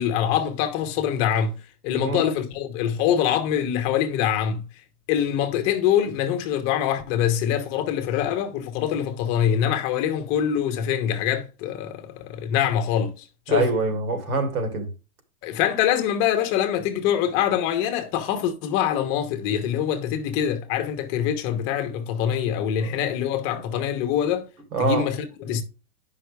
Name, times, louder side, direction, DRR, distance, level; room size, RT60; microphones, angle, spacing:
voice 1, 0.0-4.7 5.1-13.7 15.4-24.5 24.8-25.6, left 9 dB, 25° left, 1.1 m, -24 dB
voice 2, 13.5-14.9 22.9-23.0 24.7-25.1, right 4 dB, 80° right, 2.7 m, -25 dB
9.3 x 5.8 x 3.4 m
supercardioid pair, 165°, 43 cm